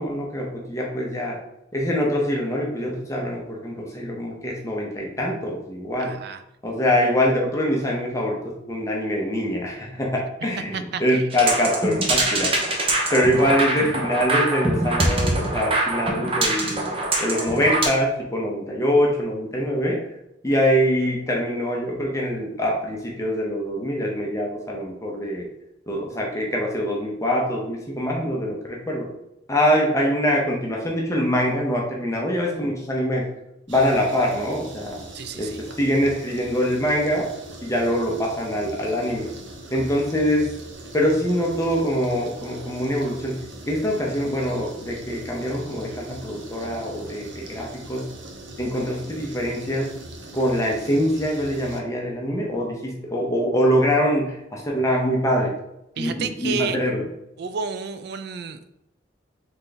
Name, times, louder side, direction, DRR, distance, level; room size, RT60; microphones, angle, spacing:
voice 1, 0.0-1.4 1.7-6.2 6.6-12.5 13.1-16.9 17.2-20.0 20.4-25.5 25.9-29.1 29.5-33.3 33.7-35.0 35.4-37.3 37.6-39.3 39.7-40.5 40.9-48.1 48.6-49.9 50.3-55.5 56.0-57.0, equal, 15° left, -2 dB, 0.7 m, -24 dB
voice 2, 6.0-6.4 10.7-11.2 13.1-13.3 35.1-35.6 56.0-56.8 57.4-58.7, right 5 dB, 60° right, 11 dB, 0.4 m, -31 dB
sound 1, 11.3-17.9, right 2 dB, 30° right, 0.8 m, -24 dB
sound 2, 33.7-51.8, right 1 dB, 75° right, 0.8 m, -41 dB
3.9 x 3.4 x 3.9 m, 0.86 s
head